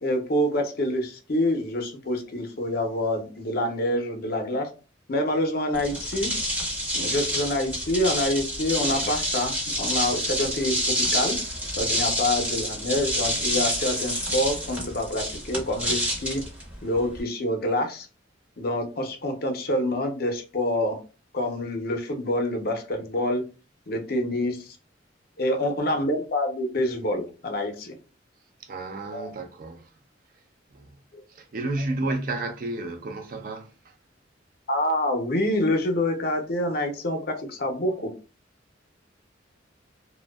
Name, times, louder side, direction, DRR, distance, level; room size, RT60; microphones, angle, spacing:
voice 1, 0.0-4.7 5.1-6.3 6.9-11.4 11.8-16.4 16.8-18.1 18.6-21.0 21.3-23.4 23.9-24.7 25.4-27.9 29.1-29.3 34.7-38.1, left 1 dB, 55° left, 0.6 m, -26 dB
sound 1, 5.7-17.2, equal, 10° right, 0.6 m, -28 dB
voice 2, 28.6-29.9 30.7-31.0 31.3-33.9, right 2 dB, 50° right, 0.4 m, -32 dB
2.6 x 2.1 x 2.2 m
head